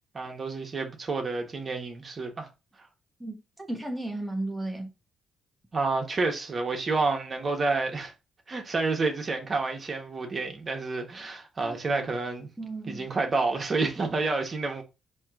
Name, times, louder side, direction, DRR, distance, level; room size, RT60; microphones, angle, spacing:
voice 1, 0.1-2.5 5.7-8.1 8.5-12.5 12.9-14.8, right 3 dB, 45° right, 1.4 m, -29 dB
voice 2, 3.7-4.9 11.6-11.8 12.6-13.0, right 2 dB, 10° right, 1.1 m, -34 dB
4.3 x 3.1 x 3.7 m
supercardioid pair, 55°, 0 cm